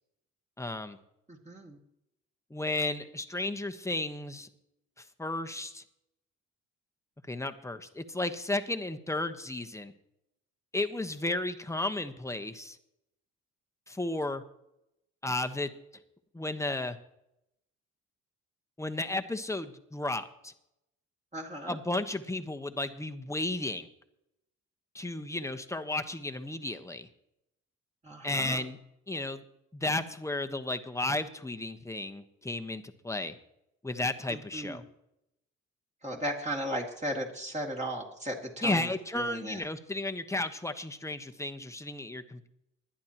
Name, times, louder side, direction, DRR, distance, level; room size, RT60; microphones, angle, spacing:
voice 1, 0.6-1.0 2.5-4.5 5.0-5.8 7.3-9.9 10.7-12.8 13.9-14.4 15.2-15.7 16.3-17.0 18.8-20.5 21.7-23.9 24.9-27.1 28.2-28.8 29.1-29.4 29.7-33.3 33.8-34.8 38.6-42.5, left 2 dB, 10° left, 8 dB, 1.1 m, -33 dB
voice 2, 1.3-1.8 21.3-21.8 28.0-28.6 34.3-34.8 36.0-38.9 39.1-39.6, equal, 25° right, -1 dB, 2.4 m, -36 dB
20.0 x 11.5 x 3.0 m, 0.83 s
cardioid pair, 90°, 30 cm